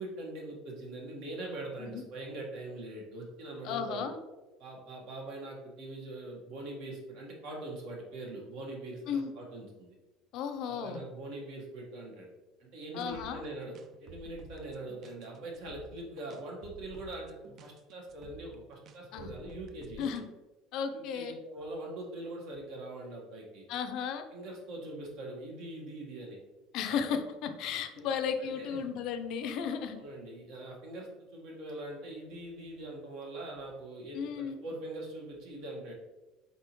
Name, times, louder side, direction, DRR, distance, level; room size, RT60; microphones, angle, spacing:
voice 1, 0.0-4.1 4.6-9.9 10.6-12.3 12.6-20.2 20.9-23.6 24.3-26.4 26.9-27.0 28.4-28.8 29.9-35.9, right 2 dB, 65° right, -1 dB, 1.2 m, -42 dB
voice 2, 3.6-4.2 9.1-9.3 10.3-11.0 12.9-13.4 19.1-19.3 20.0-20.2 20.7-21.3 23.7-24.2 26.7-30.0 34.1-34.6, left 7 dB, 60° left, 8 dB, 0.4 m, -34 dB
sound 1, 13.0-20.2, right 4 dB, 40° right, 0.4 m, -52 dB
4.1 x 3.5 x 2.9 m, 1.1 s
cardioid pair, 135°, 0 cm